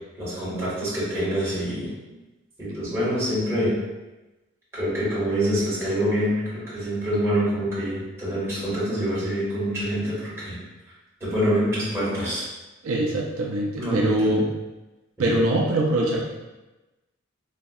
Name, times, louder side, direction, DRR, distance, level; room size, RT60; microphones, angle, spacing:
voice 1, 0.2-1.9 2.6-3.7 4.7-10.6 11.2-12.5 13.8-14.4 15.2-15.4, equal, 15° right, -11 dB, 1.4 m, -26 dB
voice 2, 12.8-14.5 15.2-16.2, right 1 dB, 85° right, -1 dB, 0.5 m, -23 dB
4.0 x 2.7 x 2.3 m, 1.1 s
head